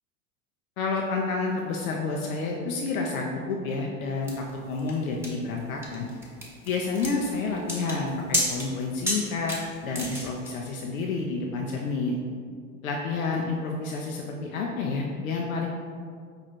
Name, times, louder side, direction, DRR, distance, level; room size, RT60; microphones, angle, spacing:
voice 1, 0.8-6.1 6.7-12.2 12.8-15.7, left 3 dB, 70° left, 0 dB, 0.6 m, -29 dB
sound 1, 4.3-10.5, equal, 5° right, 1.1 m, -32 dB
5.2 x 2.4 x 4.2 m, 2.2 s
figure-of-eight pair, 80°, 43 cm